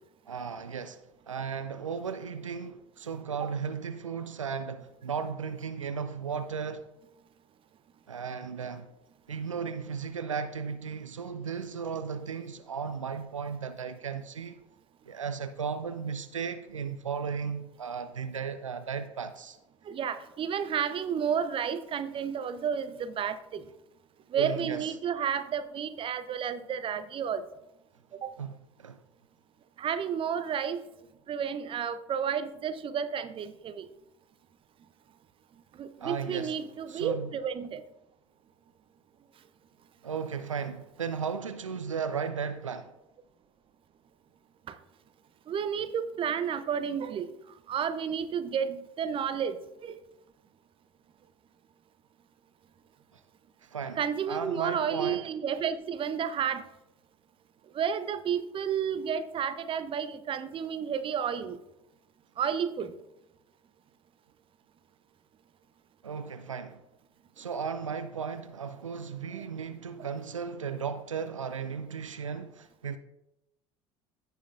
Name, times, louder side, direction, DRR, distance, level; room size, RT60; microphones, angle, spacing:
voice 1, 0.3-1.0 1.3-6.9 8.1-8.9 9.3-14.6 15.1-19.6 24.4-24.9 28.4-29.0 36.0-36.6 36.9-37.3 40.0-42.9 53.1-53.2 53.6-54.0 54.3-55.3 66.0-66.8 67.4-73.0, right 6 dB, 90° right, 0.4 m, -35 dB
voice 2, 19.8-23.7 24.3-27.4 28.2-28.4 29.8-30.8 31.3-33.9 35.8-37.8 44.7-44.8 45.5-47.3 47.7-50.0 54.0-56.7 57.7-61.6 62.4-62.9 69.3-69.4 70.0-70.1, right 7 dB, 35° right, 0.7 m, -31 dB
15.5 x 5.8 x 2.5 m
figure-of-eight pair, 65°, 16 cm